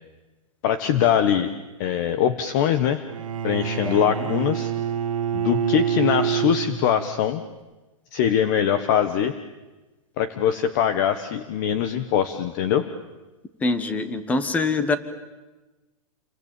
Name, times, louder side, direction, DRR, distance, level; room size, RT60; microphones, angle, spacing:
voice 1, 0.6-1.5 1.8-3.0 3.4-4.7 5.3-7.4 8.1-9.4 10.2-12.9, left 9 dB, 35° left, 11 dB, 1.2 m, -22 dB
Bowed string instrument, 3.1-7.2, right 9 dB, 75° right, 1.6 m, -26 dB
voice 2, 3.8-4.2 13.6-15.0, left 3 dB, 10° left, 12 dB, 1.3 m, -24 dB
28.5 x 23.0 x 9.0 m, 1.2 s
hypercardioid pair, 170°, 18 cm